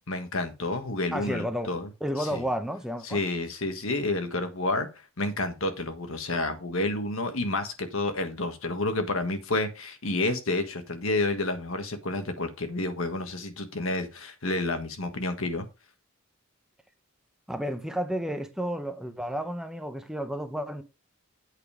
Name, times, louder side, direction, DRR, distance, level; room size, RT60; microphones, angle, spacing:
voice 1, 0.1-1.9 2.2-2.4 3.0-4.9 5.2-15.7, left 2 dB, 65° left, 1.5 m, -30 dB
voice 2, 1.1-1.7 2.0-3.2 17.5-20.8, equal, 5° right, 0.7 m, -31 dB
8.3 x 5.2 x 4.9 m
head